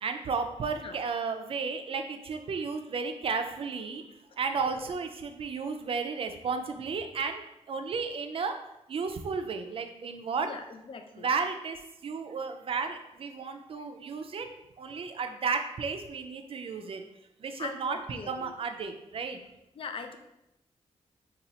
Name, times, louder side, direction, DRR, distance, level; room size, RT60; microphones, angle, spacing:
voice 1, 0.0-4.0 4.4-8.6 8.9-10.5 11.2-17.0 17.4-19.4, right 5 dB, 55° right, 6 dB, 0.4 m, -33 dB
voice 2, 10.4-11.3 17.6-18.5 19.7-20.2, left 5 dB, 50° left, 7 dB, 0.4 m, -41 dB
2.8 x 2.3 x 4.1 m, 0.86 s
cardioid pair, 90°, 11 cm